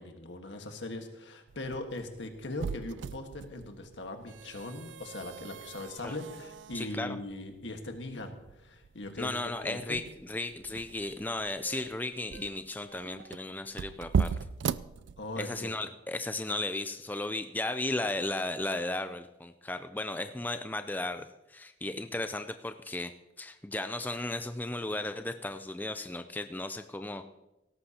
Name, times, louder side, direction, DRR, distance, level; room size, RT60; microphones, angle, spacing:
voice 1, 0.0-10.0 15.2-15.7, left 2 dB, 85° left, 4 dB, 1.6 m, -40 dB
sound 1, 1.5-15.6, right 6 dB, 85° right, 0.3 m, -38 dB
voice 2, 6.7-7.2 9.2-14.3 15.4-23.1 23.4-27.3, left 2 dB, 10° left, 9 dB, 0.4 m, -35 dB
17.0 x 13.5 x 2.9 m, 0.98 s
head